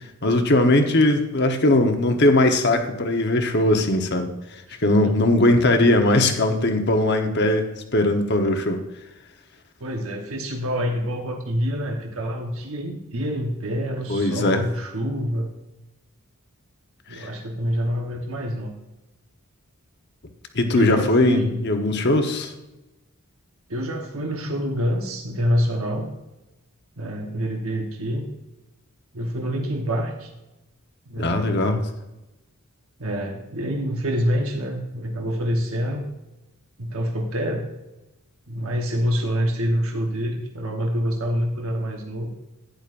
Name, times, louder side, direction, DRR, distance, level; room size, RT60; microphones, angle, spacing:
voice 1, 0.2-4.3 4.8-8.8 14.1-14.6 17.1-17.3 20.5-22.5 31.2-31.8, left 1 dB, 50° left, 5 dB, 1.1 m, -20 dB
voice 2, 9.8-15.5 17.1-18.7 20.7-21.6 23.7-26.0 27.0-28.3 29.1-30.3 31.1-31.8 33.0-36.0 36.8-37.6 38.5-42.3, equal, 70° right, 2 dB, 1.1 m, -26 dB
11.5 x 10.0 x 2.6 m, 0.99 s
head